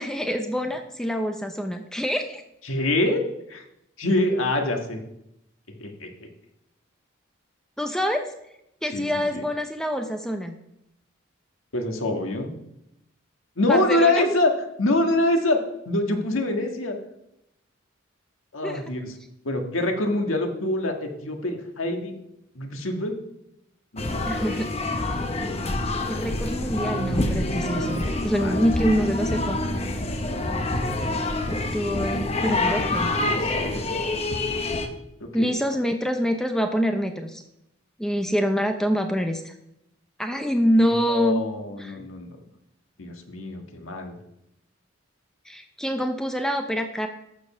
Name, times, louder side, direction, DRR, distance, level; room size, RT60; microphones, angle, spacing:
voice 1, 0.0-2.4 7.8-8.3 8.8-10.5 13.7-14.2 18.6-18.8 24.3-24.7 26.1-29.6 31.5-33.1 35.3-37.4 38.0-39.6 40.2-41.4 41.8-42.0 45.5-47.1, equal, 5° left, 5 dB, 0.6 m, -26 dB
voice 2, 2.6-3.2 3.5-3.6 4.0-5.0 5.8-6.1 8.9-9.4 11.7-12.5 13.6-14.5 14.8-15.6 15.8-17.0 18.5-19.1 19.4-22.1 22.5-23.1 23.9-24.2 25.3-25.9 28.4-28.6 31.9-34.0 35.2-35.5 40.8-42.4 43.0-44.2, left 2 dB, 85° left, 3 dB, 1.6 m, -25 dB
sound 1, 24.0-34.9, left 2 dB, 30° left, 0.9 m, -26 dB
14.0 x 5.3 x 5.5 m, 0.82 s
head